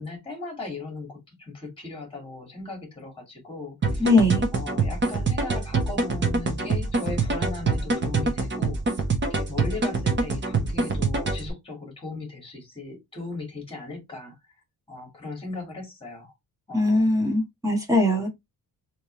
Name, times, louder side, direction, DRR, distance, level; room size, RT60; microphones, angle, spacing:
voice 1, 0.0-4.1 4.5-14.4 14.9-16.3 16.7-17.1, left 3 dB, 15° left, 1.8 m, -38 dB
sound 1, 3.8-11.5, right 3 dB, 30° right, 0.9 m, -25 dB
voice 2, 4.0-4.5 16.7-18.3, left 1 dB, 10° right, 1.2 m, -21 dB
3.4 x 3.0 x 3.0 m
wide cardioid pair, 165°, 36 cm